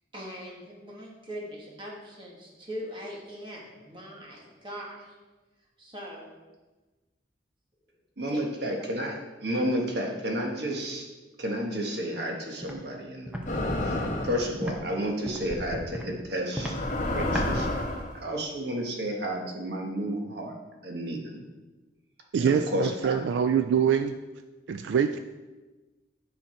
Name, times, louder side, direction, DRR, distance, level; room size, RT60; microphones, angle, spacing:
voice 1, 0.1-5.2 5.8-6.3 8.3-8.4 9.5-9.6, equal, 25° right, -2 dB, 1.7 m, -41 dB
voice 2, 8.2-11.1 11.4-16.7 17.0-17.7 18.2-20.5 20.8-21.4 22.4-23.2, equal, 65° right, 1 dB, 1.3 m, -31 dB
Walk footsteps, 12.6-12.8 13.3-13.4 13.9-14.1 14.6-14.8 15.2-15.5 15.9-16.1 16.5-16.8 17.3-17.5, equal, 5° right, 0.9 m, -33 dB
sound 1, 13.5-14.5 15.5-15.8 16.5-18.1, left 1 dB, 40° left, 1.2 m, -30 dB
voice 3, 22.3-24.2 24.7-25.2, right 7 dB, 80° right, 9 dB, 0.3 m, -24 dB
9.2 x 5.7 x 4.4 m, 1.2 s
head